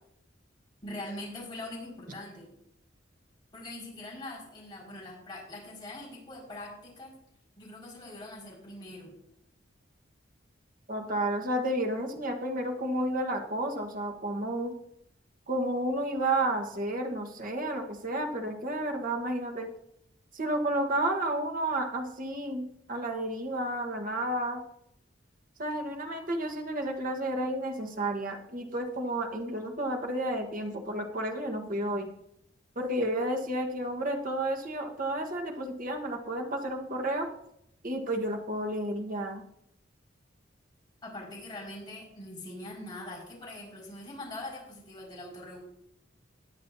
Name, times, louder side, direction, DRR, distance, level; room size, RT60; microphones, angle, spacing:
voice 1, 0.8-2.5 3.5-7.1 7.6-9.1 41.0-45.6, left 1 dB, 25° left, -5 dB, 5.3 m, -42 dB
voice 2, 10.9-14.7 15.5-19.7 20.3-24.6 25.6-32.1 32.7-37.3 37.8-39.4, right 1 dB, 45° right, 2 dB, 1.4 m, -31 dB
20.0 x 7.7 x 2.7 m, 0.76 s
head